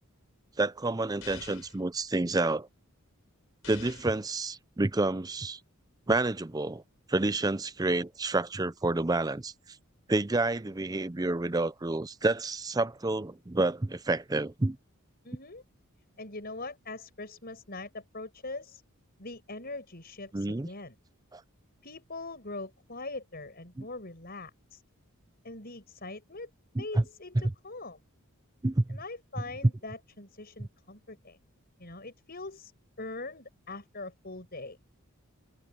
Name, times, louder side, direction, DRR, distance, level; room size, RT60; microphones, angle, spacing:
voice 1, 0.6-2.7 3.7-5.6 6.1-6.8 7.1-9.5 10.1-14.8 20.3-20.7 21.3-21.4 23.8-23.9 26.8-27.0 28.6-29.0, right 2 dB, 15° right, 0.5 m, -29 dB
sound 1, 1.2-1.8 3.6-4.2, left 6 dB, 65° left, 6.9 m, -47 dB
voice 2, 15.2-15.6 16.2-18.8 19.2-20.9 21.8-24.8 25.4-26.5 26.8-28.0 28.9-31.4 31.8-32.7 33.0-34.8, left 2 dB, 45° left, 6.5 m, -42 dB
head